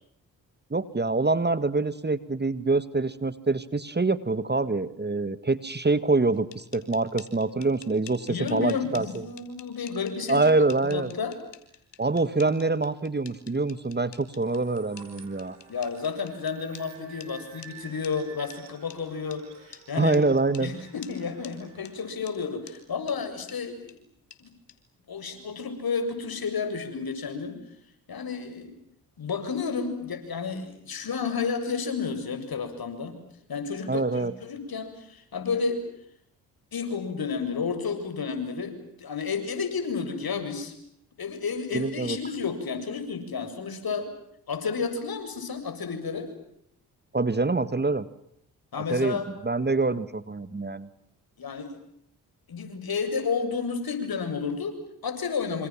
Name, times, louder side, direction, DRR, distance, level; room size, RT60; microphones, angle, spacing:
voice 1, 0.7-9.2 10.3-11.1 12.0-15.6 20.0-20.7 33.9-34.3 41.7-42.2 47.1-48.1 48.9-49.2 49.4-50.9, right 3 dB, 25° right, 15 dB, 1.8 m, -25 dB
sound 1, 6.3-16.9 17.2-17.3 17.6-17.7 18.0-18.1 18.5-18.6 18.9-19.0 19.3-19.4 19.7-19.8 20.1-20.2 20.5-20.7 21.0-21.1 21.4-21.5 21.8-21.9 22.3-22.4 22.7-22.8 23.1-23.2 23.5-23.6 23.9-24.0 24.3-24.4 24.7-24.8, left 11 dB, 75° left, 4.0 m, -47 dB
voice 2, 8.3-10.4 10.8-11.4 15.7-20.2 20.6-24.0 24.4-24.5 25.1-27.6 28.1-28.7 29.2-33.1 33.5-35.8 36.7-40.7 41.2-44.1 44.5-46.3 48.7-49.2 51.4-51.7 52.5-55.7, left 5 dB, 55° left, 8 dB, 7.5 m, -31 dB
sound 2, 14.4-23.0, right 7 dB, 70° right, 6.1 m, -51 dB
27.5 x 27.0 x 7.4 m, 0.71 s
supercardioid pair, 50°, 42 cm